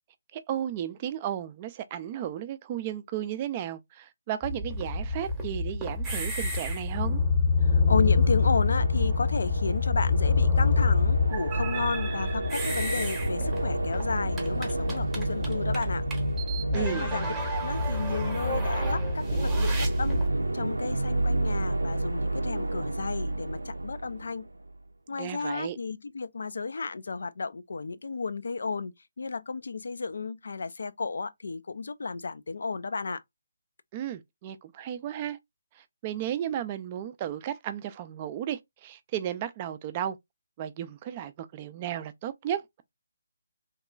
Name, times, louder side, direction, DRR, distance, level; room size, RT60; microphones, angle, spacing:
voice 1, 0.3-7.2 16.7-17.1 25.2-25.8 33.9-35.4 35.8-40.2 40.6-42.8, right 10 dB, 30° right, 0.3 m, -34 dB
sound 1, 4.4-20.3, left 3 dB, 10° right, 0.8 m, -27 dB
voice 2, 7.6-16.0 16.7-20.2 20.5-24.5 25.1-33.2, left 4 dB, 65° left, 0.3 m, -33 dB
sound 2, 7.8-24.8, right 2 dB, 90° right, 0.5 m, -31 dB
2.9 x 2.2 x 2.3 m
figure-of-eight pair, 150°, 0 cm